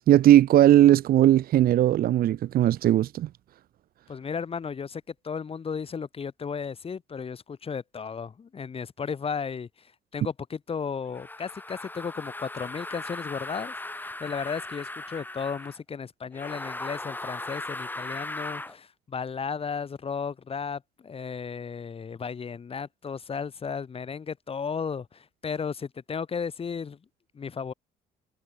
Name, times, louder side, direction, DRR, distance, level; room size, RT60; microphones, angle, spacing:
voice 1, 0.1-3.3, right 12 dB, 60° right, 1.2 m, -18 dB
voice 2, 4.1-27.0 27.3-27.7, left 6 dB, 35° left, 6.9 m, -34 dB
sound 1, 11.1-15.8 16.3-18.8, left 2 dB, 10° left, 3.4 m, -38 dB
cardioid pair, 110°, 17 cm